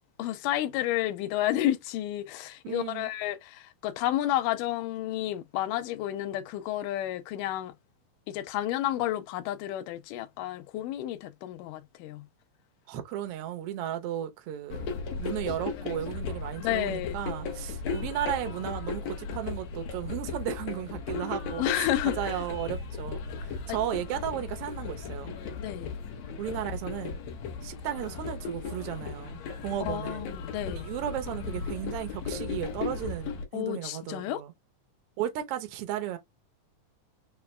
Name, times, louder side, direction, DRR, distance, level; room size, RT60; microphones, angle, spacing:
voice 1, 0.2-7.7 8.3-12.3 16.6-17.2 21.6-22.3 23.7-23.8 25.6-25.9 29.8-30.9 33.5-34.4, left 13 dB, 80° left, 2.3 m, -31 dB
voice 2, 2.6-3.1 12.9-14.9 15.2-21.9 22.2-25.4 26.4-27.2 27.6-30.3 30.7-34.5 35.2-36.2, right 11 dB, 75° right, 1.3 m, -35 dB
sound 1, 14.7-33.4, left 5 dB, 65° left, 1.9 m, -36 dB
5.7 x 2.3 x 3.2 m
omnidirectional pair, 3.8 m